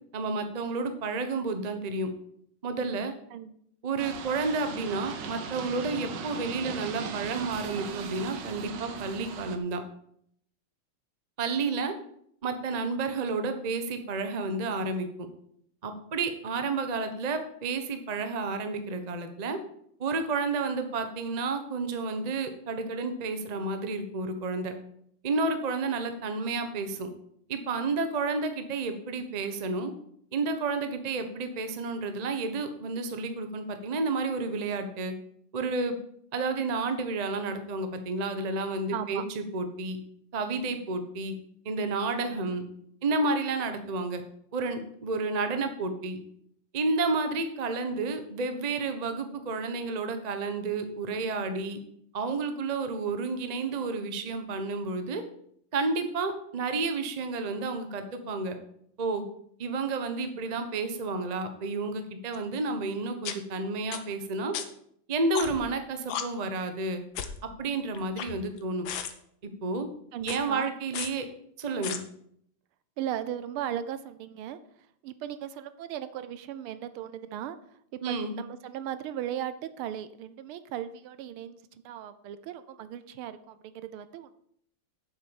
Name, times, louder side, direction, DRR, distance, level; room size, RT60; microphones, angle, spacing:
voice 1, 0.1-2.1 2.6-3.1 3.8-9.8 11.4-11.9 12.4-15.1 15.8-19.6 20.0-24.7 25.2-27.1 27.5-29.9 30.3-35.1 35.5-35.9 36.3-40.0 40.3-41.3 41.6-42.6 43.0-44.2 44.5-46.2 46.7-51.8 52.1-55.2 55.7-58.6 59.0-59.2 59.6-64.5 65.1-67.0 67.6-68.9 69.4-69.9 70.2-71.3 71.6-72.0 78.0-78.3, right 3 dB, 35° right, 7 dB, 0.6 m, -31 dB
sound 1, 4.0-9.6, right 6 dB, 60° right, 1.5 m, -38 dB
voice 2, 38.9-39.2 70.1-70.7 73.0-74.6 75.0-77.6 78.1-84.3, right 10 dB, 80° right, 13 dB, 1.6 m, -37 dB
sound 2, 62.3-62.4 63.2-63.3 63.9-64.0 64.5-64.6 65.3-65.7 66.1-66.2 67.1-67.4 67.9-68.6 68.8-69.1 70.2-70.4 70.9-71.1 71.8-72.0, left 9 dB, 65° left, 1.6 m, -34 dB
8.0 x 6.9 x 7.0 m, 0.70 s
omnidirectional pair, 2.4 m